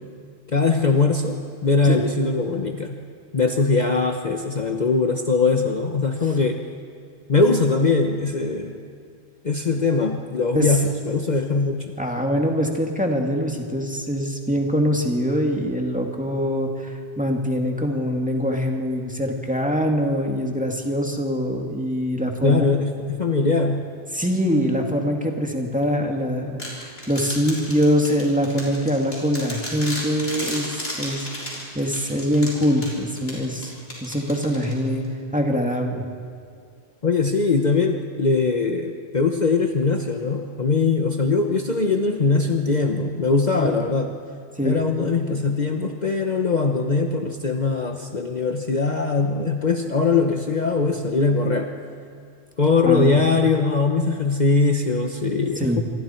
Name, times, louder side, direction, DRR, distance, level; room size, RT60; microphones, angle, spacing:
voice 1, 0.5-3.0 3.3-6.6 7.3-8.8 9.4-12.0 22.4-23.9 37.0-44.1 44.6-51.7 52.6-55.8, left 4 dB, 40° left, 4 dB, 1.1 m, -21 dB
voice 2, 12.0-22.7 24.1-33.7 34.0-35.0 35.3-36.1 43.6-43.7 44.6-44.8 52.8-53.2 55.6-55.8, equal, 5° right, 1 dB, 2.2 m, -23 dB
sound 1, 26.6-35.1, left 1 dB, 60° left, 5.9 m, -34 dB
27.0 x 23.0 x 4.5 m, 2.4 s
omnidirectional pair, 1.1 m